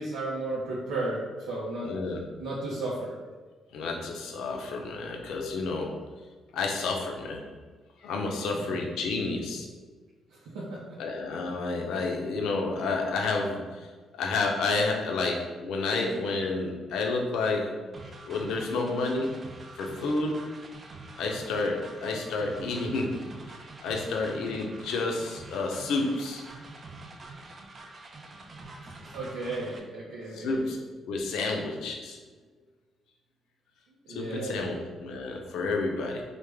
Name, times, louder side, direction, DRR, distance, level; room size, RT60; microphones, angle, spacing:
voice 1, 0.0-2.0 2.4-3.2 8.5-8.8 10.3-11.0 28.8-30.7 33.9-34.8, right 2 dB, 90° right, -6 dB, 0.5 m, -34 dB
voice 2, 1.8-2.2 3.7-5.9 6.5-7.4 8.0-9.7 11.0-13.9 14.2-17.7 18.3-19.4 19.8-20.4 21.2-23.2 23.8-26.4 30.3-30.8 31.1-32.2 34.1-36.2, left 3 dB, 85° left, 1 dB, 0.5 m, -30 dB
sound 1, 17.9-29.8, right 2 dB, 40° right, 0.4 m, -46 dB
3.3 x 2.1 x 3.3 m, 1.4 s
cardioid pair, 90°, 0 cm